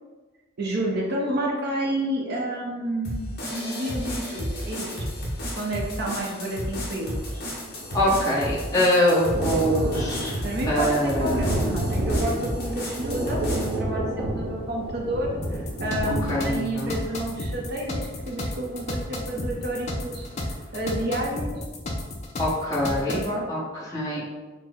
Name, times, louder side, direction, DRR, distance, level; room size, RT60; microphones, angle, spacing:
voice 1, 0.6-5.2 5.6-7.4 10.4-21.5 22.8-23.5, right 1 dB, 50° right, -2 dB, 0.6 m, -30 dB
sound 1, 3.0-13.8, equal, 50° left, 0.9 m, -33 dB
Thunder, 7.1-19.8 20.2-20.3 20.7-20.8, right 1 dB, 90° right, 0.6 m, -30 dB
voice 2, 7.9-10.4 10.7-11.4 16.3-16.9 22.4-23.6 23.9-24.2, left 1 dB, 15° left, -8 dB, 0.9 m, -24 dB
sound 2, 15.4-23.3, left 1 dB, 35° left, 0.4 m, -32 dB
4.3 x 2.0 x 3.5 m, 1.3 s
head